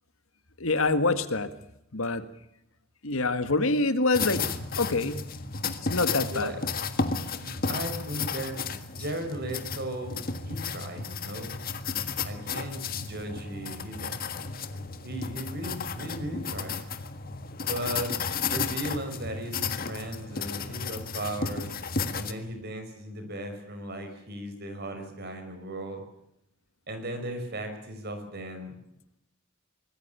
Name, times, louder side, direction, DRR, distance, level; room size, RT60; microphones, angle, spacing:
voice 1, 0.6-1.5 1.9-2.2 3.0-4.4 4.8-5.2 5.6-6.5, left 3 dB, 70° left, 10 dB, 1.9 m, -26 dB
sound 1, 4.1-22.3, left 5 dB, 40° left, 1.7 m, -33 dB
voice 2, 7.3-11.5 12.2-14.5 15.0-16.8 17.6-18.2 18.4-21.8 22.1-26.0 26.9-28.8, right 1 dB, 45° right, 6 dB, 5.8 m, -37 dB
25.5 x 19.5 x 7.0 m, 0.81 s
head